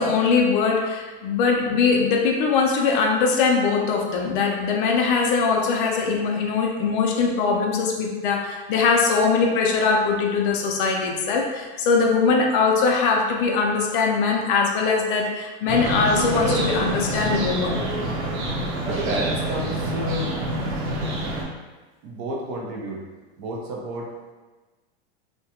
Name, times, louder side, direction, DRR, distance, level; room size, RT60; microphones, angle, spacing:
voice 1, 0.0-17.8, left 4 dB, 50° left, 1 dB, 0.4 m, -21 dB
sound 1, 15.7-21.4, right 1 dB, 85° right, 0.7 m, -26 dB
voice 2, 18.9-20.3 22.0-23.0 23.4-24.3, right 1 dB, 45° right, -2 dB, 0.5 m, -30 dB
2.3 x 2.1 x 2.8 m, 1.2 s
supercardioid pair, 160°, 33 cm